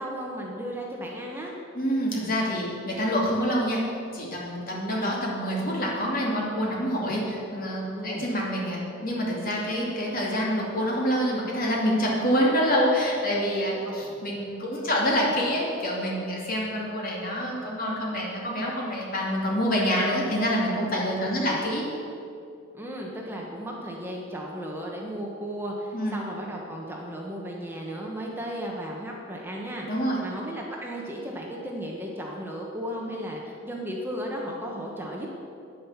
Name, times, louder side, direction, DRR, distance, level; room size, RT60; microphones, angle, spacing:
voice 1, 0.0-1.5 7.8-8.2 13.8-13.9 21.3-21.6 22.7-29.9 30.2-35.3, equal, 10° right, -1 dB, 1.2 m, -35 dB
voice 2, 1.7-3.8 4.1-21.8 25.9-26.2 29.9-30.2, equal, 45° left, -3 dB, 2.7 m, -26 dB
9.6 x 9.5 x 7.3 m, 2.6 s
head